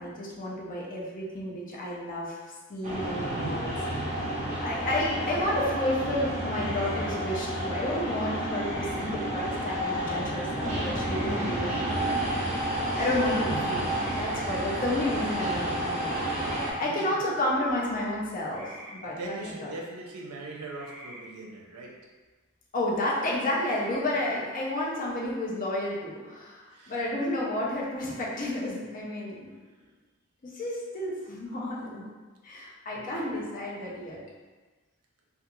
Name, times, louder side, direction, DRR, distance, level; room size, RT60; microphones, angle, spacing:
voice 1, 0.0-2.4 2.7-16.4 16.8-19.7 22.7-29.5 30.4-32.1 32.4-34.2, left 1 dB, 40° left, -4 dB, 0.5 m, -31 dB
sound 1, 2.8-16.7, right 1 dB, 30° right, 0.6 m, -30 dB
sound 2, 6.5-7.1 8.5-9.0 10.9-11.5 13.9-14.4 16.4-16.8 18.5-18.9 20.8-21.2 23.5-24.0, right 1 dB, 5° right, 1.1 m, -46 dB
voice 2, 16.8-17.2 19.0-21.9 26.7-27.0 32.9-33.4, right 2 dB, 80° right, -1 dB, 0.5 m, -41 dB
2.4 x 2.3 x 2.9 m, 1.3 s
head